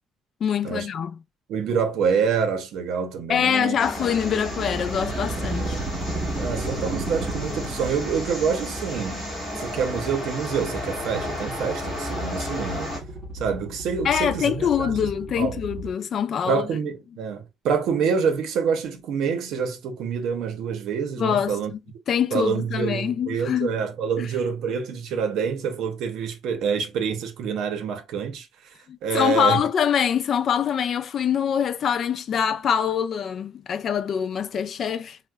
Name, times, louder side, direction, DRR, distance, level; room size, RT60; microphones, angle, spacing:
voice 1, 0.4-1.2 3.3-5.8 14.0-16.6 21.2-21.8 22.1-23.7 28.9-35.2, left 8 dB, 45° left, 0.3 m, -24 dB
voice 2, 1.5-4.2 6.4-12.9 13.3-15.0 15.4-15.6 16.5-21.7 22.3-28.7 29.0-29.6, right 6 dB, 70° right, 0.7 m, -27 dB
sound 1, 3.8-13.0, left 1 dB, 5° left, 1.5 m, -33 dB
sound 2, 4.1-15.9, right 2 dB, 25° right, 2.1 m, -35 dB
4.4 x 2.1 x 2.2 m
cardioid pair, 145°, 0 cm